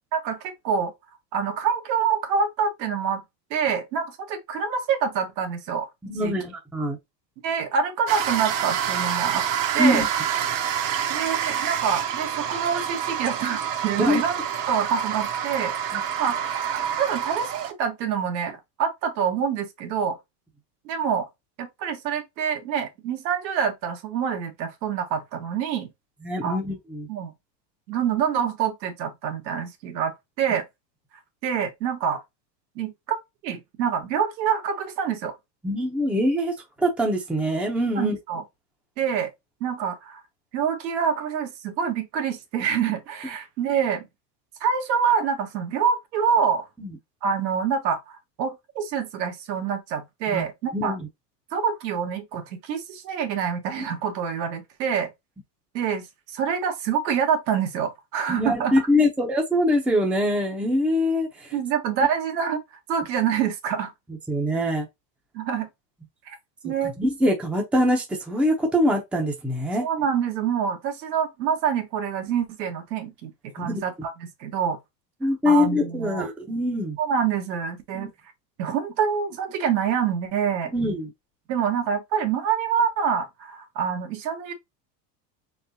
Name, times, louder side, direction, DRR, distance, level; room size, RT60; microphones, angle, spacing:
voice 1, 0.1-0.9 1.3-3.2 3.5-5.9 6.2-6.3 7.4-9.4 9.7-10.1 11.1-14.4 14.7-15.7 16.2-16.4 17.0-20.2 20.8-21.3 21.6-25.9 26.4-26.6 27.1-27.3 27.9-30.6 31.4-32.2 32.7-33.2 33.4-35.3 38.0-38.4 39.0-39.3 39.6-40.2 40.5-44.0 44.6-46.7 47.2-51.0 51.5-55.1 55.7-56.1 56.3-58.8 61.5-62.6 62.9-63.9 65.3-65.7 66.3-66.4 66.6-66.9 69.8-74.8 75.4-76.3 77.0-78.1 78.6-80.7 81.5-84.5, right 7 dB, 85° right, 1.6 m, -26 dB
voice 2, 6.0-7.0 9.8-10.1 14.0-14.2 15.9-16.0 26.2-27.1 35.6-38.2 46.8-46.9 50.3-50.5 50.7-51.1 58.3-61.5 64.3-64.9 67.0-69.9 73.6-73.8 75.2-77.0 77.9-78.1 80.7-81.1, left 1 dB, 5° right, 0.6 m, -23 dB
sound 1, 8.1-17.7, right 9 dB, 40° right, 0.8 m, -27 dB
4.0 x 3.4 x 2.7 m
supercardioid pair, 145°, 50 cm